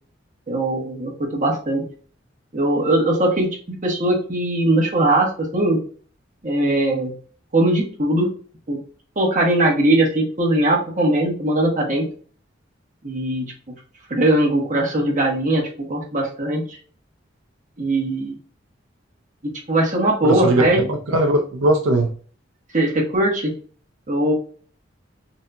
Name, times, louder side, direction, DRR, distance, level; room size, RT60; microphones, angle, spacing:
voice 1, 0.5-1.8 2.5-5.8 6.4-7.1 7.5-8.3 8.7-8.8 9.2-12.1 13.0-13.5 14.1-16.6 17.8-18.3 19.7-20.8 22.7-23.5 24.1-24.3, right 1 dB, 40° right, -2 dB, 1.2 m, -20 dB
voice 2, 20.2-20.6 20.9-22.1, right 1 dB, 85° right, 3 dB, 0.5 m, -19 dB
4.0 x 2.7 x 2.3 m, 0.43 s
head